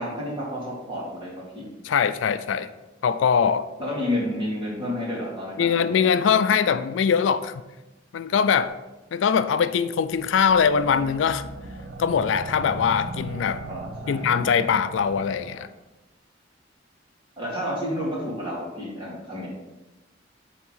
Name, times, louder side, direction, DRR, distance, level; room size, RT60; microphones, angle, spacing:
voice 1, 0.0-1.6 3.8-6.0 13.6-14.2 17.4-19.5, left 1 dB, 25° right, -5 dB, 2.4 m, -30 dB
voice 2, 1.8-2.7 3.0-3.7 5.6-7.6 8.1-8.8 9.1-11.5 12.0-13.6 14.1-15.7, left 7 dB, 80° left, 12 dB, 0.4 m, -22 dB
sound 1, 10.1-15.7, right 2 dB, 70° right, 0.8 m, -38 dB
7.3 x 3.6 x 5.5 m, 1.1 s
head